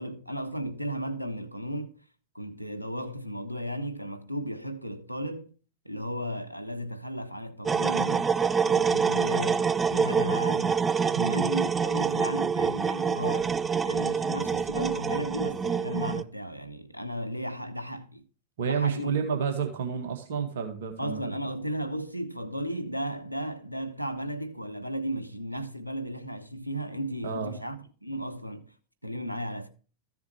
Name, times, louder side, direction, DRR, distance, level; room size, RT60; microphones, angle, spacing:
voice 1, 0.0-2.0 2.3-5.5 5.8-8.4 8.6-10.8 11.3-18.2 18.6-19.1 21.0-28.7 29.0-29.7, equal, 90° right, 1.0 m, -35 dB
sound 1, 7.7-16.2, right 6 dB, 15° right, 0.4 m, -26 dB
voice 2, 18.6-21.5 27.2-27.5, right 6 dB, 60° right, 1.8 m, -30 dB
14.0 x 7.0 x 3.2 m
figure-of-eight pair, 90°, 0 cm